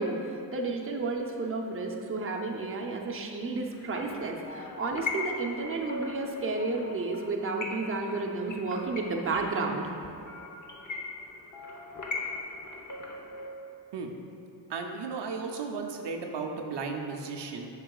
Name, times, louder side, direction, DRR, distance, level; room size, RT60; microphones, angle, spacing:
voice 1, 0.0-9.9, right 3 dB, 30° right, 1 dB, 0.6 m, -32 dB
sound 1, 3.7-13.5, left 3 dB, 45° left, 0.7 m, -39 dB
voice 2, 14.7-17.7, right 4 dB, 70° right, 2 dB, 0.6 m, -35 dB
7.6 x 5.6 x 2.3 m, 2.7 s
cardioid pair, 70°, 43 cm